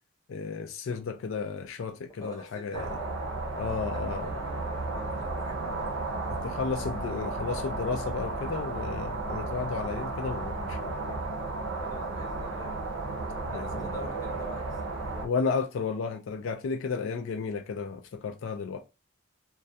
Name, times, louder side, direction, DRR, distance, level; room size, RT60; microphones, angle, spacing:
voice 1, 0.3-2.9 3.5-4.3 6.4-11.2 13.4-14.0 15.2-18.8, left 5 dB, 75° left, 0.3 m, -33 dB
voice 2, 2.2-3.2 3.8-5.9 11.8-12.7 13.5-15.0, equal, 20° left, 0.7 m, -46 dB
sound 1, 2.7-15.3, right 3 dB, 70° right, 0.6 m, -33 dB
2.2 x 2.2 x 2.6 m
head